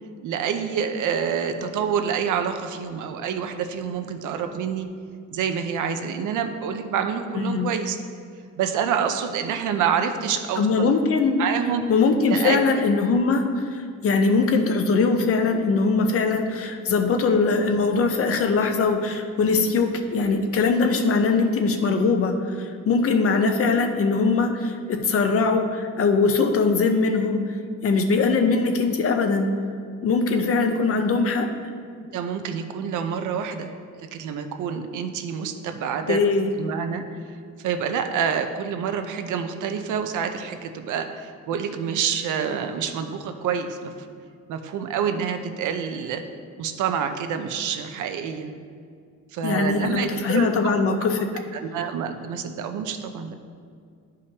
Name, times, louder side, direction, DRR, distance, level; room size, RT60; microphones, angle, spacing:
voice 1, 0.2-4.9 5.3-8.0 8.6-10.9 11.4-11.8 12.3-12.6 32.1-33.7 34.0-36.2 36.6-37.2 37.6-44.1 44.5-46.2 46.6-48.5 49.3-50.5 51.5-53.3, right 7 dB, 90° right, 7 dB, 0.7 m, -27 dB
voice 2, 7.3-7.7 10.6-11.4 11.9-27.4 27.8-29.5 30.0-31.5 36.1-36.5 49.4-51.3, left 4 dB, 50° left, 5 dB, 0.7 m, -21 dB
12.5 x 4.9 x 2.9 m, 2.2 s
cardioid pair, 155°, 30 cm